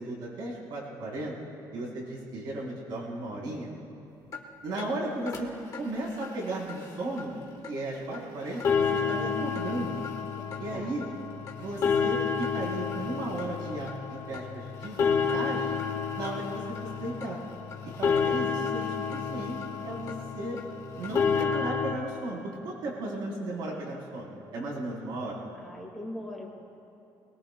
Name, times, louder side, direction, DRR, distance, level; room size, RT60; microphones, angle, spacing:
voice 1, 0.0-1.3 1.7-3.7 4.6-5.5 5.8-7.3 7.6-9.9 10.6-11.1 11.6-15.8 16.2-16.6 17.0-17.4 18.0-19.6 19.8-20.6 21.0-25.4, right 1 dB, 65° right, -4 dB, 3.9 m, -35 dB
sound 1, 4.3-4.4 4.8-4.9 5.3-5.4 5.7-5.8 6.2-6.3 6.7-6.8 7.2-7.3 7.6-7.7 8.1-8.2 8.5-21.9, left 6 dB, 40° left, 1.4 m, -30 dB
voice 2, 10.4-11.0 25.6-26.5, left 1 dB, ahead, -1 dB, 2.0 m, -41 dB
22.5 x 21.5 x 2.3 m, 2.9 s
cardioid pair, 170°, 8 cm